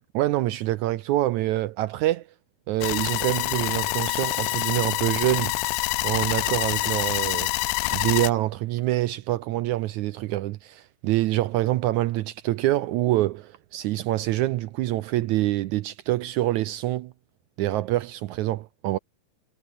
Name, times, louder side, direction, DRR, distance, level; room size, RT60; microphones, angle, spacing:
voice 1, 0.1-2.3 2.7-5.6 6.0-7.5 7.9-17.1 17.6-19.0, right 16 dB, 75° right, 1.8 m, -25 dB
sound 1, 2.8-8.3, left 22 dB, 80° left, 1.9 m, -26 dB
omnidirectional pair, 4.0 m